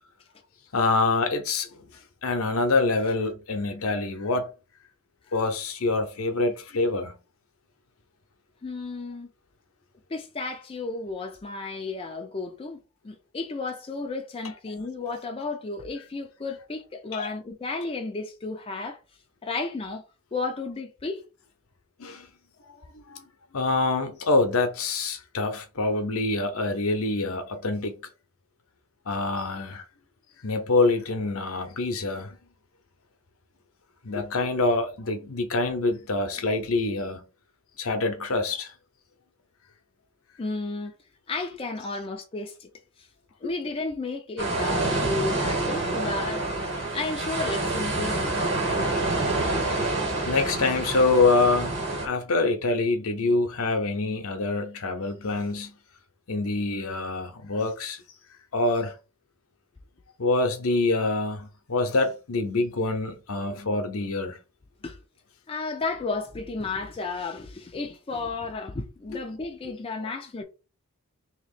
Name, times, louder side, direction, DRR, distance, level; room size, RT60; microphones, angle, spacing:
voice 1, 0.7-1.7 2.2-4.5 5.3-7.2 17.1-17.3 22.0-22.3 23.1-23.2 23.5-27.9 29.1-29.8 30.4-32.4 34.0-37.2 37.8-38.7 50.2-55.7 56.3-58.0 58.5-58.9 60.2-64.4 69.1-69.2, left 3 dB, 70° left, 0.8 m, -25 dB
voice 2, 8.6-9.3 10.1-19.0 19.4-20.0 20.3-21.2 40.4-40.9 41.3-42.7 43.0-43.1 43.4-46.5 46.9-48.4 64.8-65.0 65.5-70.4, left 3 dB, 25° left, 0.4 m, -33 dB
sound 1, 44.4-52.1, right 2 dB, 55° right, 1.6 m, -27 dB
2.9 x 2.9 x 4.2 m
head